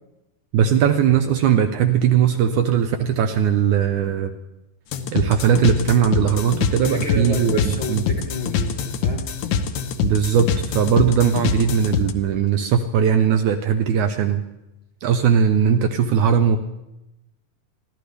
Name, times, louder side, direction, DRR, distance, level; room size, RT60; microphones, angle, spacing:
voice 1, 0.5-4.3 5.1-8.1 10.0-14.4 15.0-16.6, right 8 dB, 75° right, 7 dB, 1.9 m, -19 dB
sound 1, 4.9-12.1, left 6 dB, 70° left, 2.3 m, -24 dB
voice 2, 6.8-9.4, left 3 dB, 45° left, 0 dB, 1.9 m, -30 dB
23.0 x 15.5 x 3.4 m, 0.93 s
omnidirectional pair, 4.0 m